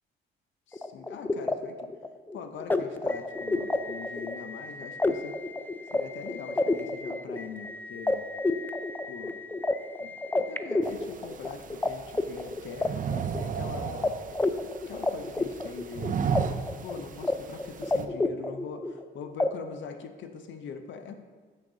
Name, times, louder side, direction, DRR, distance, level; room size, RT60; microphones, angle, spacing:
voice 1, 0.7-1.9 2.3-5.4 5.9-8.2 9.1-9.4 10.0-13.0 13.3-14.1 14.9-16.2 16.8-21.1, left 6 dB, 70° left, 7 dB, 0.6 m, -42 dB
sound 1, 0.7-11.9 12.1-13.7 14.0-14.1 14.4-16.4 16.7-17.3 17.6-19.0 19.4-19.5, left 2 dB, 10° left, 0.3 m, -29 dB
sound 2, 10.8-18.1, right 6 dB, 40° right, 0.5 m, -35 dB
6.5 x 6.3 x 3.8 m, 1.5 s
cardioid pair, 90°, 20 cm